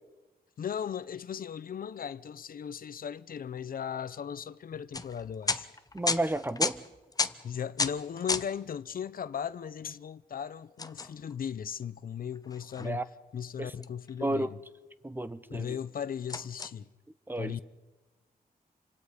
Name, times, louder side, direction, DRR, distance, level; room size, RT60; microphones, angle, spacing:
voice 1, 0.6-5.7 7.4-14.6 15.5-16.9 17.4-17.6, left 8 dB, 65° left, 0.7 m, -37 dB
sound 1, 4.9-8.6 8.9-9.0 10.8-11.8 12.3-12.9 13.8-14.5 15.0-15.1 15.4-15.6 16.3-16.7, left 3 dB, 25° left, 0.8 m, -33 dB
voice 2, 5.9-6.8 12.8-13.0 13.6-13.7 14.2-14.5 15.0-15.8 17.3-17.6, right 1 dB, 15° right, 0.8 m, -32 dB
29.0 x 25.5 x 5.1 m
wide cardioid pair, 115°, 16 cm